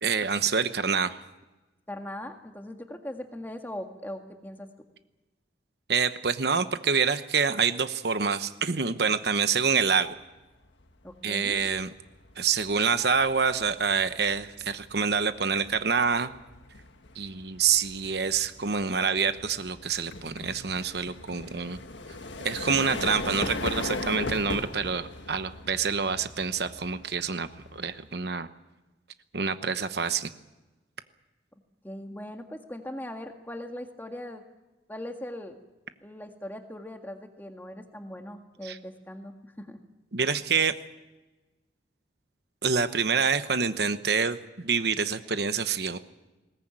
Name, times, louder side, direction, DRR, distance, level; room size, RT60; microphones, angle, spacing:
voice 1, 0.0-1.2 5.9-10.2 11.2-11.9 12.4-16.3 17.1-21.8 22.4-28.5 29.3-30.3 38.6-38.8 40.1-40.7 42.6-46.0, right 5 dB, 60° right, 11 dB, 1.0 m, -27 dB
voice 2, 1.9-4.7 11.0-11.6 31.8-34.4 34.9-35.6 36.0-39.8, left 1 dB, 10° left, 5 dB, 1.8 m, -40 dB
sound 1, 10.8-11.1 11.5-28.2, left 2 dB, 90° left, 1.6 m, -39 dB
21.0 x 18.5 x 9.0 m, 1.1 s
head